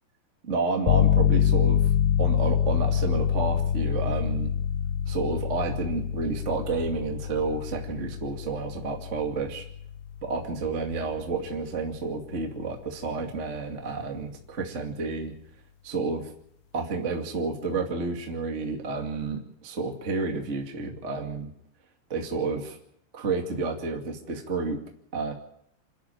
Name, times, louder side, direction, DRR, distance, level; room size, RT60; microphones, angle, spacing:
voice 1, 0.4-1.9 2.2-4.5 5.1-9.6 10.2-15.3 15.8-16.3 16.7-21.5 22.1-22.8 23.1-24.8 25.1-25.3, right 3 dB, 30° right, 2 dB, 1.5 m, -30 dB
sound 1, 0.9-11.4, left 9 dB, 90° left, 3.3 m, -26 dB
28.0 x 10.5 x 9.1 m, 0.72 s
omnidirectional pair, 5.2 m